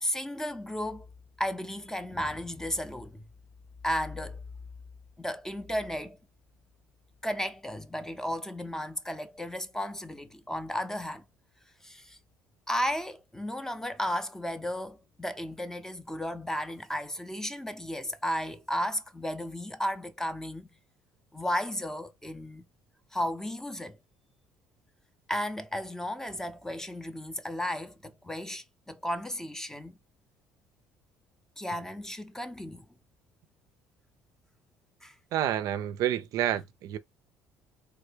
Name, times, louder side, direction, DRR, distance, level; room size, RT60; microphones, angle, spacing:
voice 1, 0.0-1.1 1.4-3.2 3.8-4.4 5.2-6.2 7.2-11.2 11.8-12.2 12.7-20.7 21.3-22.6 23.1-24.0 25.3-30.0 31.6-32.8 35.0-35.1, equal, 5° left, 0.5 m, -34 dB
voice 2, 35.3-37.0, right 11 dB, 65° right, 0.4 m, -29 dB
3.4 x 2.1 x 3.2 m
supercardioid pair, 95°, 7 cm